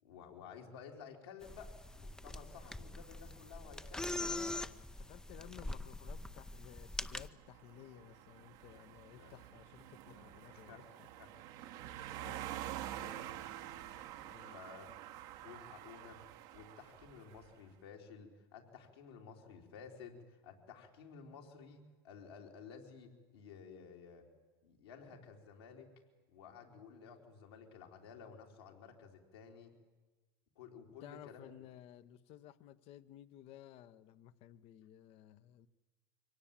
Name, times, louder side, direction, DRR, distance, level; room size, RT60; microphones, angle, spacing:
voice 1, 0.0-4.3 8.7-8.8 9.1-9.3 10.0-10.9 11.2-11.3 13.0-13.8 14.5-14.9 15.4-16.2 16.5-24.3 24.6-25.9 26.3-29.7 30.6-31.5, left 6 dB, 80° left, 1 dB, 3.8 m, -54 dB
sound 1, 1.4-7.3, left 2 dB, 5° left, 0.7 m, -43 dB
voice 2, 4.1-11.1 12.2-12.7 14.2-14.6 31.0-35.7, left 12 dB, 50° left, 13 dB, 1.0 m, -56 dB
Car Drive By Fast, 7.2-17.5, right 12 dB, 60° right, 1.4 m, -48 dB
23.5 x 17.5 x 9.0 m, 1.3 s
hypercardioid pair, 95°, 13 cm